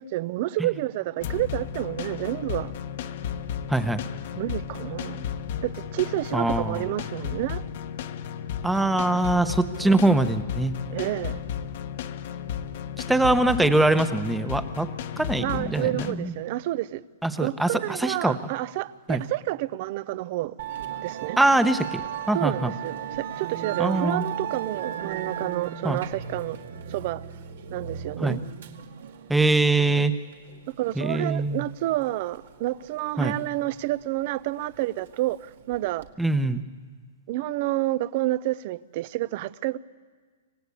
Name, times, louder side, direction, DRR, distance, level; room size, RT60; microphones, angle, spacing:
voice 1, 0.0-2.7 4.4-5.3 5.6-7.6 9.4-9.6 9.8-10.1 10.9-11.4 15.4-17.0 17.4-20.6 21.0-21.4 22.3-26.6 26.9-27.2 27.7-28.4 30.8-36.1 37.3-39.8, right 16 dB, 45° right, 0.7 m, -29 dB
sound 1, 1.2-16.1, left 8 dB, 60° left, 1.3 m, -34 dB
voice 2, 3.7-4.0 6.3-6.8 8.6-10.7 13.1-14.9 15.2-16.3 17.2-18.3 19.1-19.2 21.4-22.0 22.3-22.7 23.8-24.2 25.8-26.0 28.2-28.4 29.3-30.1 31.0-31.6 33.2-33.4 36.2-36.6, right 2 dB, 5° right, 1.0 m, -23 dB
Musical instrument, 20.6-36.1, right 8 dB, 70° right, 2.1 m, -37 dB
26.0 x 18.0 x 8.4 m
hypercardioid pair, 145°, 0 cm